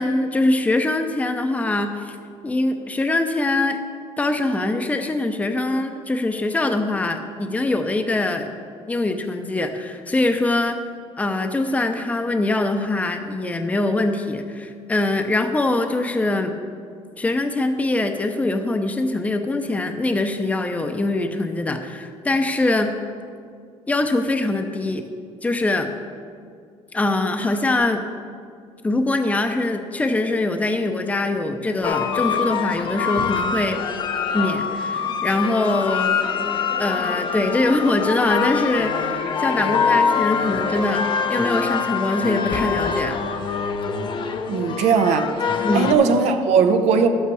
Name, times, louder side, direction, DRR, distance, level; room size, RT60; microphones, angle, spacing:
voice 1, 0.0-2.2 2.4-3.8 4.2-8.5 8.9-10.8 11.2-16.5 17.2-23.0 23.9-25.0 25.4-25.9 26.9-28.0 28.8-33.8 34.3-36.2 36.8-43.2 45.6-45.9, left 2 dB, 10° left, 0.7 m, -23 dB
sound 1, 31.8-45.9, left 6 dB, 45° left, 0.8 m, -24 dB
voice 2, 44.5-47.1, right 5 dB, 75° right, 0.9 m, -19 dB
11.0 x 8.3 x 4.8 m
cardioid pair, 115°, 12 cm